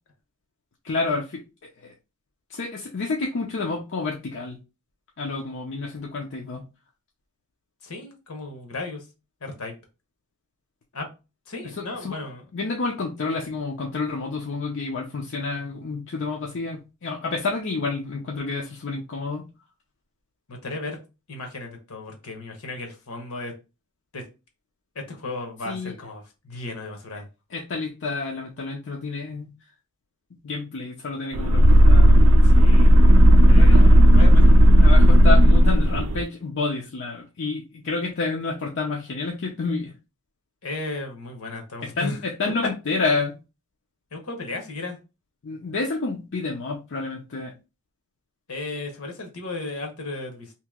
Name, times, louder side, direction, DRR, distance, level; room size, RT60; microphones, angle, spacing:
voice 1, 0.8-1.4 1.8-1.9 2.5-4.6 5.2-6.6 12.0-12.2 12.5-19.5 25.7-25.9 27.5-29.5 30.3-32.1 33.5-33.9 34.8-39.9 42.0-43.4 45.4-47.5, left 3 dB, 55° left, -1 dB, 0.6 m, -29 dB
voice 2, 7.8-9.0 9.4-9.7 10.9-11.1 11.5-12.4 20.5-21.0 21.3-23.5 24.1-24.2 24.9-27.3 32.4-33.0 33.5-34.6 40.6-42.2 44.1-45.0 48.5-50.5, left 2 dB, 70° left, 4 dB, 1.0 m, -35 dB
sound 1, 31.3-36.2, equal, 65° right, 0.4 m, -13 dB
2.9 x 2.7 x 3.5 m, 0.29 s
head